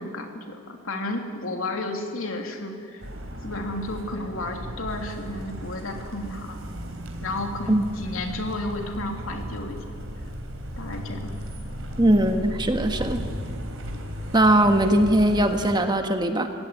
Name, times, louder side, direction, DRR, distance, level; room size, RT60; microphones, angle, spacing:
voice 1, 0.0-3.0 3.4-6.6 7.2-9.8 10.8-11.3, left 2 dB, 75° left, 3 dB, 3.1 m, -32 dB
sound 1, 3.0-15.8, equal, 70° right, 3.6 m, -35 dB
voice 2, 12.0-13.3 14.3-16.5, right 1 dB, 20° right, 6 dB, 1.5 m, -20 dB
25.0 x 17.0 x 9.8 m, 2.2 s
head